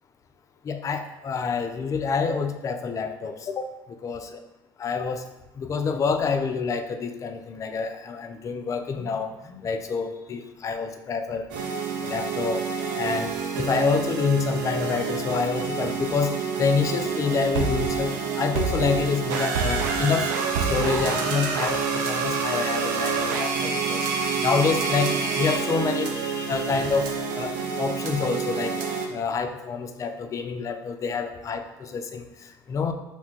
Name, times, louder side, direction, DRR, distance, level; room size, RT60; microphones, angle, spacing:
voice 1, 0.6-3.7 4.0-4.3 4.8-5.2 5.5-11.5 12.0-20.3 20.7-27.1 27.4-28.8 29.1-32.9, left 5 dB, 35° left, 7 dB, 0.3 m, -27 dB
sound 1, 11.5-29.1, right 5 dB, 85° right, 0.4 m, -27 dB
2.5 x 2.2 x 3.8 m, 0.97 s
supercardioid pair, 80°, 10 cm